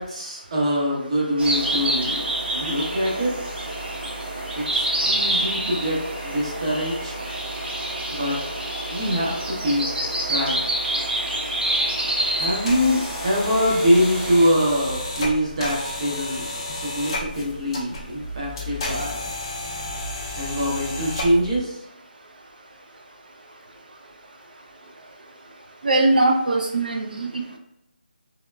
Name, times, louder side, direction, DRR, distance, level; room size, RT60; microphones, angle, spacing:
voice 1, 0.0-2.2 2.5-3.6 4.5-7.1 8.1-8.4 8.9-9.9 10.3-10.6 12.3-16.4 16.7-19.3 20.3-21.8, equal, 35° right, -4 dB, 0.8 m, -24 dB
sound 1, 1.4-14.5, right 1 dB, 85° right, 0.9 m, -27 dB
sound 2, 12.4-21.6, left 1 dB, 25° left, 0.4 m, -32 dB
voice 2, 25.8-27.6, right 2 dB, 60° right, 2 dB, 0.5 m, -21 dB
3.0 x 2.2 x 2.2 m, 0.81 s
figure-of-eight pair, 170°, 5 cm